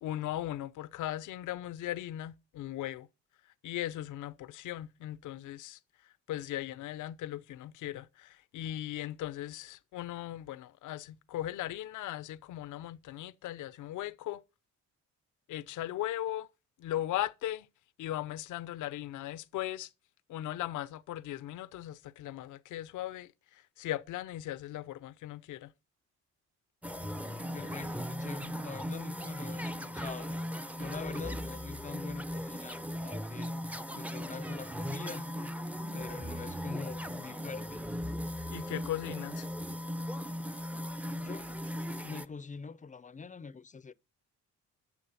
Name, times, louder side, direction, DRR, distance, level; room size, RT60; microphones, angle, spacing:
voice 1, 0.0-3.1 3.6-14.4 15.5-16.5 16.8-17.7 18.0-19.9 20.3-25.7 38.5-39.5, left 13 dB, 80° left, 0.7 m, -38 dB
sound 1, 26.8-42.3, equal, 5° right, 0.7 m, -38 dB
voice 2, 27.5-30.4 30.8-33.5 33.9-35.6 35.9-37.8 41.1-41.6 41.9-43.9, left 5 dB, 25° left, 0.6 m, -44 dB
9.7 x 6.7 x 5.7 m
cardioid pair, 90°, 30 cm